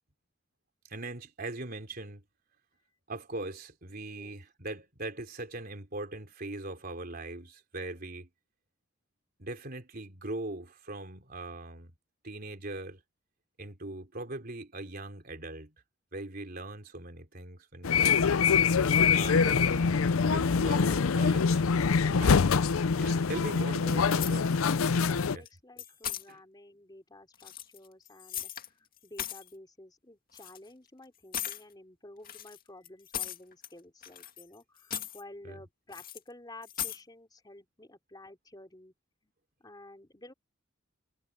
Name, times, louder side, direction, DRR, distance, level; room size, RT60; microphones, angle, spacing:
voice 1, 0.9-2.2 3.1-8.3 9.4-11.9 12.2-13.0 13.6-15.7 16.1-18.1 19.1-20.0 20.3-21.6 22.1-22.5 23.0-24.5 25.3-25.5 26.3-26.4 35.4-35.6, right 2 dB, 45° right, 3.5 m, -40 dB
voice 2, 4.0-4.4 23.5-38.9 39.2-39.3 39.6-40.3, left 1 dB, 20° left, 3.3 m, -52 dB
sound 1, 17.8-25.4, left 5 dB, 85° left, 0.5 m, -24 dB
sound 2, 24.2-24.8 25.1-25.5 25.8-26.2 27.3-28.7 29.0-29.5 30.3-30.6 31.3-31.6 32.2-33.7 34.0-34.5 34.8-35.2 35.9-36.2 36.6-37.0, left 10 dB, 45° left, 2.2 m, -38 dB
head